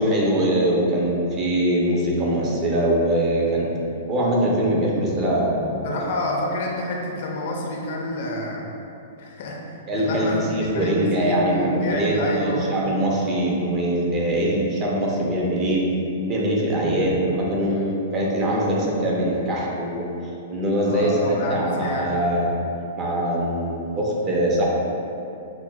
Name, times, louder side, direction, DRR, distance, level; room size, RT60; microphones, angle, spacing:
voice 1, 0.0-3.7 4.1-6.0 9.9-15.9 16.3-20.1 20.5-22.5 22.9-24.7, right 1 dB, 25° right, -3 dB, 0.6 m, -22 dB
voice 2, 5.8-8.6 9.2-12.7 16.8-17.1 20.9-22.2, left 1 dB, 55° left, -1 dB, 0.5 m, -29 dB
5.8 x 2.2 x 2.3 m, 2.8 s
hypercardioid pair, 160°, 0 cm